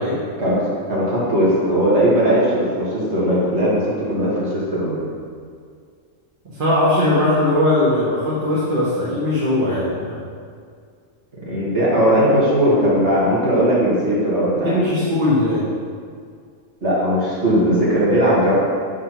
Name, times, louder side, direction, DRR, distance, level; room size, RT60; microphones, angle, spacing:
voice 1, 0.4-3.8 4.1-5.0 11.5-14.9 16.8-18.5, equal, 55° right, -8 dB, 2.2 m, -18 dB
voice 2, 6.6-10.1 14.6-15.6, left 1 dB, 40° right, -9 dB, 1.4 m, -19 dB
6.4 x 3.7 x 5.8 m, 2.1 s
omnidirectional pair, 1.4 m